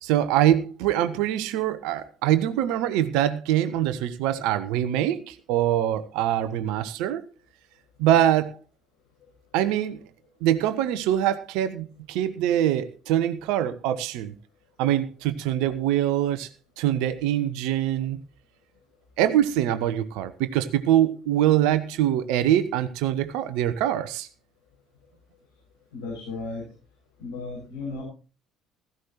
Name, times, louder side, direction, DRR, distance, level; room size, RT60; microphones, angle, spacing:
voice 1, 0.0-7.2 8.0-8.6 9.5-10.0 10.4-14.3 14.8-16.5 16.8-18.2 19.2-24.3, right 12 dB, 65° right, 12 dB, 1.0 m, -24 dB
voice 2, 25.9-26.6 27.2-28.0, left 3 dB, 70° left, -4 dB, 6.9 m, -34 dB
16.0 x 15.0 x 3.0 m, 0.34 s
figure-of-eight pair, 55°, 0 cm